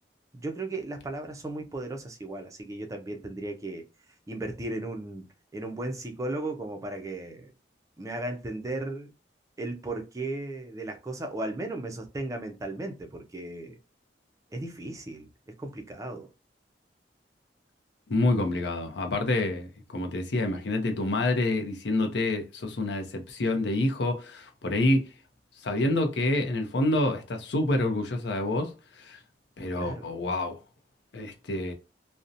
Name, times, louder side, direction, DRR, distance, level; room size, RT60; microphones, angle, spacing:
voice 1, 0.3-3.9 4.3-7.5 8.0-9.1 9.6-13.8 14.5-15.3 15.6-16.3 29.8-30.0, right 2 dB, 20° right, 0.4 m, -36 dB
voice 2, 18.1-25.0 25.6-28.7 29.0-29.2 29.6-30.6 31.1-31.7, left 2 dB, 70° left, 0.6 m, -27 dB
2.6 x 2.1 x 2.5 m
head